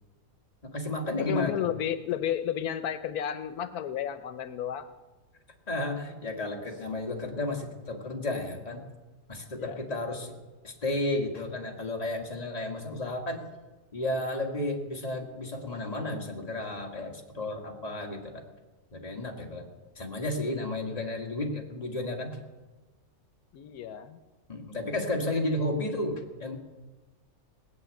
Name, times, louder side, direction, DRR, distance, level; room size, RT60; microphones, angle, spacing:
voice 1, 0.6-1.7 5.7-8.8 9.3-10.3 10.6-13.4 13.9-18.4 18.9-19.7 20.0-22.4 24.5-26.6, left 2 dB, 25° left, 1 dB, 1.9 m, -32 dB
voice 2, 1.2-4.9 9.6-9.8 23.5-24.2 25.3-25.4, left 10 dB, 90° left, 12 dB, 1.2 m, -32 dB
19.0 x 6.4 x 9.1 m, 1.2 s
omnidirectional pair, 1.6 m